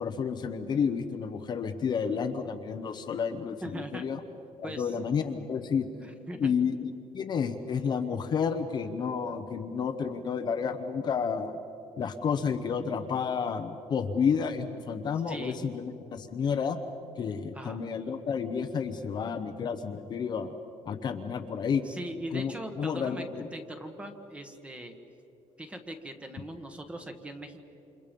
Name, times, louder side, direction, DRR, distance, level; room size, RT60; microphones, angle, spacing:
voice 1, 0.0-4.2 4.6-5.9 6.4-11.6 12.0-16.8 17.2-20.5 20.8-21.8 22.3-23.5, left 6 dB, 35° left, 6 dB, 0.9 m, -31 dB
voice 2, 3.6-4.1 4.6-5.0 6.0-6.5 15.3-15.6 17.5-17.8 21.8-23.2 23.5-24.9 25.6-27.6, right 1 dB, 10° right, 6 dB, 1.4 m, -40 dB
29.0 x 27.0 x 5.3 m, 2.9 s
cardioid pair, 175°, 13 cm